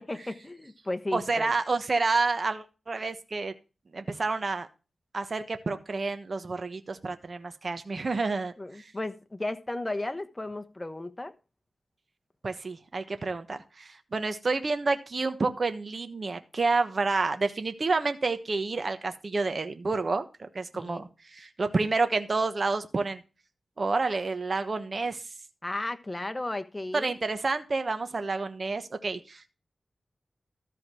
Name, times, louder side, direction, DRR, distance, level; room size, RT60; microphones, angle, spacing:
voice 1, 0.0-1.5 8.6-11.3 20.7-21.0 25.6-27.2, left 2 dB, 20° left, 1.2 m, -34 dB
voice 2, 1.1-3.5 3.9-4.7 5.1-8.9 12.4-23.2 23.8-25.2 26.9-29.6, right 3 dB, 50° right, 1.2 m, -29 dB
13.5 x 5.0 x 6.2 m
cardioid pair, 65°, 0 cm